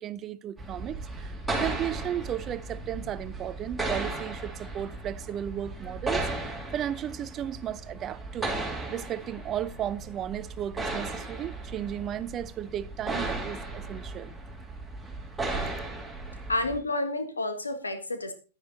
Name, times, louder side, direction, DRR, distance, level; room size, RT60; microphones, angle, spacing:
voice 1, 0.0-8.5 8.9-14.4, right 10 dB, 30° right, 0.6 m, -35 dB
sound 1, 0.6-16.8, right 2 dB, 5° right, 2.8 m, -36 dB
voice 2, 16.5-18.3, left 2 dB, 90° left, 1.7 m, -30 dB
10.0 x 9.9 x 4.0 m
hypercardioid pair, 105°, 0 cm